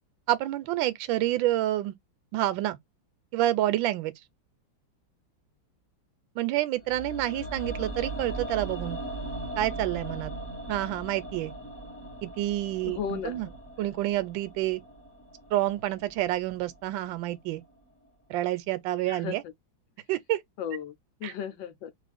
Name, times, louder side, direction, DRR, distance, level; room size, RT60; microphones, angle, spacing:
voice 1, 0.3-1.9 2.3-2.8 3.3-4.1 6.4-9.0 9.6-10.3 10.7-11.5 12.2-13.5 13.8-14.8 15.5-17.6 18.3-19.4 20.1-20.4 21.2-21.3, right 14 dB, 80° right, 1.3 m, -28 dB
sound 1, 6.8-16.9 17.2-17.3, right 1 dB, 15° left, 0.5 m, -39 dB
voice 2, 12.9-13.4 19.1-19.4 20.6-21.9, left 8 dB, 75° left, 1.3 m, -35 dB
3.1 x 2.4 x 3.3 m
omnidirectional pair, 2.1 m